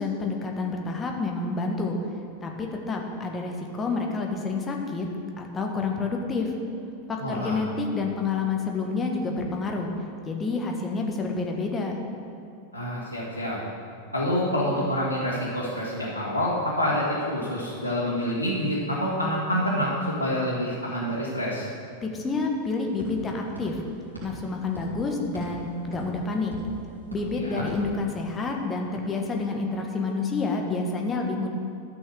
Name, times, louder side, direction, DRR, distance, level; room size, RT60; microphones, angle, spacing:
voice 1, 0.0-2.0 2.4-5.1 5.4-6.5 7.1-9.9 10.2-11.9 22.0-23.8 24.2-26.5 27.1-31.5, left 3 dB, 20° left, 1 dB, 1.4 m, -29 dB
voice 2, 7.2-7.6 12.7-13.6 14.1-19.9 20.2-21.7 27.3-27.7, equal, 85° right, -8 dB, 1.8 m, -27 dB
sound 1, 22.4-28.6, right 1 dB, 90° left, 2.9 m, -42 dB
12.5 x 6.2 x 6.7 m, 2.6 s
figure-of-eight pair, 90°, 0 cm